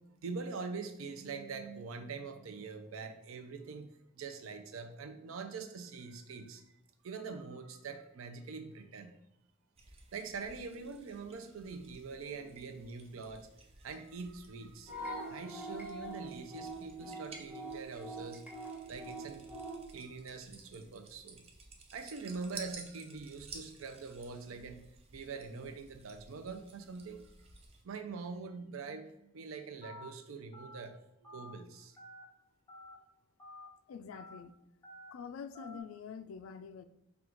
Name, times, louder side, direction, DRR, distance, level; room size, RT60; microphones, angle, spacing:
voice 1, 0.2-6.6 7.0-9.2 10.1-13.5 13.8-14.9 15.3-18.5 18.9-21.4 21.9-27.2 27.8-32.0, right 4 dB, 85° right, 7 dB, 0.5 m, -44 dB
sound 1, 9.8-27.8, right 4 dB, 30° right, 0.5 m, -55 dB
sound 2, 14.9-19.8, right 1 dB, 5° right, 0.9 m, -43 dB
Telephone, 29.8-30.1 30.5-30.8 31.2-31.5 32.0-32.2 32.7-33.0 33.4-33.7 34.1-34.4 34.8-35.1 35.5-35.8, left 1 dB, 20° left, 1.1 m, -50 dB
voice 2, 33.9-34.5 35.1-36.9, left 6 dB, 85° left, 11 dB, 0.3 m, -46 dB
4.5 x 2.4 x 3.8 m, 0.84 s
head